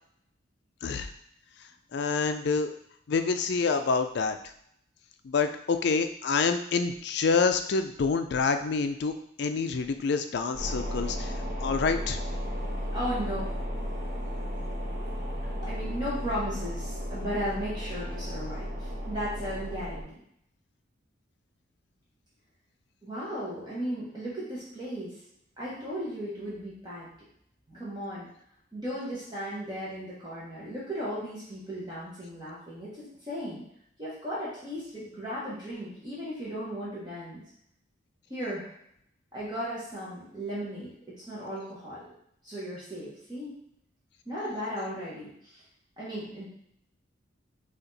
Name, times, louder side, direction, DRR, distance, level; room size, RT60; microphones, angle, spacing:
voice 1, 1.9-2.7 3.1-4.4 5.2-11.3 11.6-12.2, left 4 dB, 55° left, 8 dB, 0.4 m, -27 dB
sound 1, 10.5-20.0, equal, 50° right, 1.0 m, -34 dB
voice 2, 12.9-13.6 14.5-14.7 15.2-15.3 15.6-20.1 23.0-25.1 25.6-27.1 27.7-28.3 28.7-33.6 34.0-37.4 38.3-38.7 39.3-40.9 41.3-42.0 42.4-43.5 44.2-45.6 46.0-46.5, equal, 20° right, -9 dB, 1.2 m, -36 dB
4.2 x 2.8 x 3.9 m, 0.70 s
head